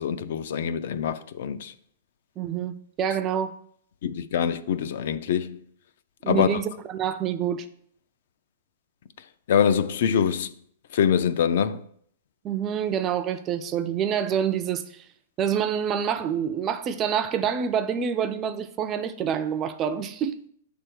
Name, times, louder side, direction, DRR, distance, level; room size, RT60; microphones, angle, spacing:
voice 1, 0.0-1.7 4.0-5.6 6.3-6.6 9.5-10.5 10.9-11.8, left 8 dB, 55° left, 0.4 m, -24 dB
voice 2, 2.4-3.5 6.2-7.7 12.4-15.0 15.4-20.4, right 8 dB, 20° right, 0.3 m, -27 dB
6.7 x 3.4 x 6.1 m
hypercardioid pair, 170°, 0 cm